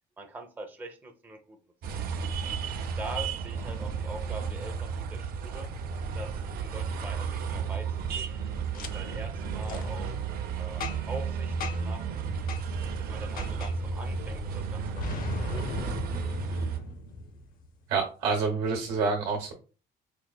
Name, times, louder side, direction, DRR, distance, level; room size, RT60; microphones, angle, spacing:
voice 1, 0.2-1.6 1.9-2.1 2.4-2.6 3.0-5.7 6.1-8.4 8.7-12.6 13.0-15.9, right 2 dB, 10° right, 3 dB, 0.6 m, -43 dB
sound 1, 1.8-16.8, right 5 dB, 60° right, 0.5 m, -33 dB
Boom, 8.7-8.9 9.6-9.9 10.8-11.2 11.6-12.0 12.5-12.7 13.4-13.8 15.0-17.7, left 3 dB, 60° left, 0.5 m, -37 dB
voice 2, 17.9-19.5, right 4 dB, 85° right, 1 dB, 0.9 m, -27 dB
4.6 x 2.4 x 2.2 m, 0.35 s
cardioid pair, 110°, 17 cm